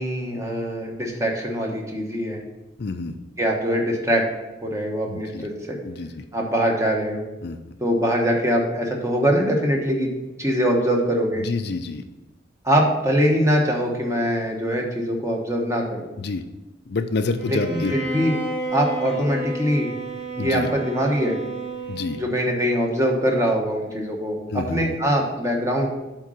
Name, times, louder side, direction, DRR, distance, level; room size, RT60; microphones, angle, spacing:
voice 1, 0.0-2.4 3.4-4.2 4.6-5.8 6.3-7.2 7.8-10.1 10.4-11.4 12.6-16.0 17.5-18.4 18.7-20.0 20.4-21.4 22.2-25.9, equal, 15° right, 0 dB, 1.1 m, -23 dB
voice 2, 2.8-3.2 5.1-5.5 5.8-6.2 7.4-7.6 11.4-12.0 16.2-16.4 16.9-17.9 20.4-20.7 21.9-22.2 24.5-24.8, left 3 dB, 55° left, 8 dB, 0.4 m, -27 dB
Bowed string instrument, 17.4-22.5, right 2 dB, 50° right, 1.7 m, -31 dB
8.1 x 3.7 x 6.4 m, 1.1 s
head